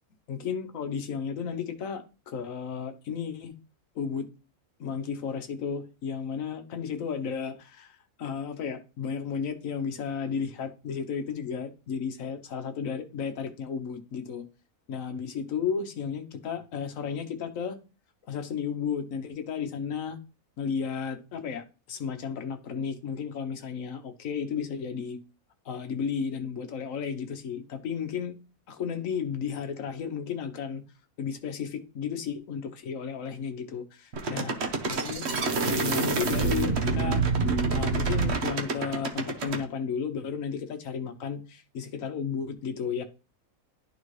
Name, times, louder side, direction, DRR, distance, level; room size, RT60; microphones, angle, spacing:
voice 1, 0.3-3.5 3.9-4.3 4.8-14.4 14.9-17.8 18.3-20.2 20.6-25.2 25.6-28.3 28.7-30.8 31.2-34.5 34.9-35.3 35.6-37.2 37.7-43.0, left 6 dB, 65° left, 1.3 m, -33 dB
sound 1, 34.1-39.6, right 4 dB, 50° right, 1.2 m, -27 dB
11.5 x 4.0 x 3.2 m
omnidirectional pair, 1.6 m